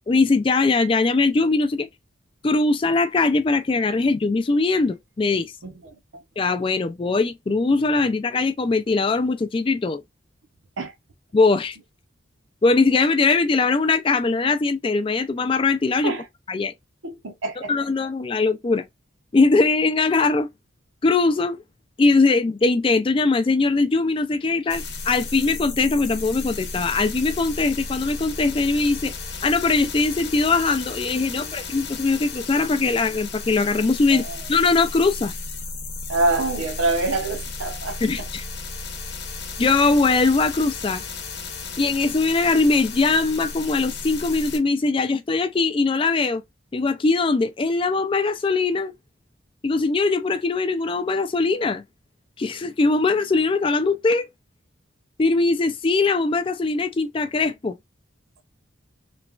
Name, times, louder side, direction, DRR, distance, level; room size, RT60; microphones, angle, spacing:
voice 1, 0.1-1.9 2.4-5.5 6.4-10.0 11.3-11.8 12.6-16.1 16.5-16.7 17.7-18.8 19.3-20.5 21.0-21.6 22.0-29.1 29.4-35.3 38.0-38.4 39.6-41.0 41.8-46.4 46.7-48.9 49.6-51.8 52.4-54.3 55.2-57.8, left 3 dB, 25° left, 0.3 m, -21 dB
voice 2, 5.6-6.2 10.8-10.9 16.0-16.3 17.0-17.7 31.3-31.5 34.1-34.4 36.1-38.0, right 2 dB, 80° right, 0.7 m, -26 dB
sound 1, 24.7-44.6, left 3 dB, 55° left, 0.8 m, -34 dB
3.0 x 2.2 x 2.4 m
head